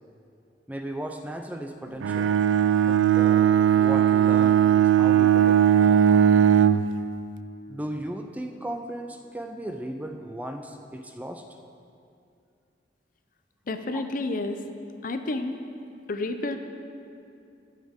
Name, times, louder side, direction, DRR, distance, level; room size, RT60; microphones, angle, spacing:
voice 1, 0.7-2.3 2.9-6.5 7.7-11.4 13.9-14.0, right 1 dB, 10° right, 5 dB, 0.4 m, -36 dB
Bowed string instrument, 2.0-6.9, right 9 dB, 90° right, 0.3 m, -19 dB
voice 2, 13.7-14.6 15.0-15.6 16.1-16.6, left 2 dB, 50° left, 8 dB, 0.5 m, -30 dB
11.5 x 7.4 x 3.6 m, 2.5 s
head